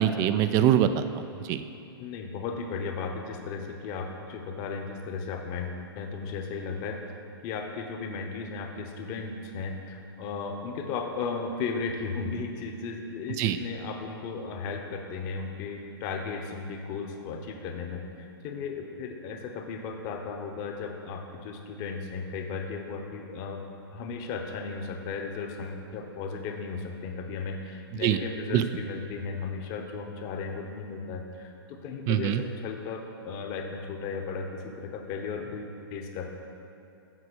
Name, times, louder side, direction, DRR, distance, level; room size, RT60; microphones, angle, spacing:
voice 1, 0.0-1.6 13.4-13.6 28.0-28.2 28.5-28.6 32.1-32.4, right 10 dB, 25° right, 11 dB, 0.3 m, -24 dB
voice 2, 2.0-7.0 7.4-23.6 23.9-36.3, left 4 dB, 35° left, 4 dB, 0.9 m, -35 dB
7.7 x 6.1 x 6.2 m, 2.8 s
hypercardioid pair, 150°, 13 cm